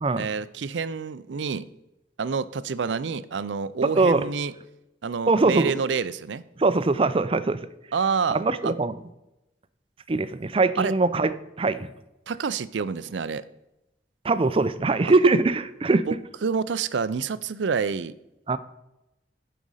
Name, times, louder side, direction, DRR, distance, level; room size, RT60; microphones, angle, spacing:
voice 1, 0.2-1.7 2.2-4.5 5.0-6.4 7.9-8.7 10.8-10.9 12.3-13.4 15.0-15.1 16.1-16.2 16.4-18.1, right 5 dB, 90° right, 16 dB, 0.5 m, -28 dB
voice 2, 3.8-4.3 5.3-5.7 6.6-7.6 8.3-8.9 10.1-11.9 14.2-16.1 18.5-18.6, right 3 dB, 30° right, 13 dB, 0.5 m, -22 dB
11.0 x 5.1 x 5.5 m, 0.92 s
head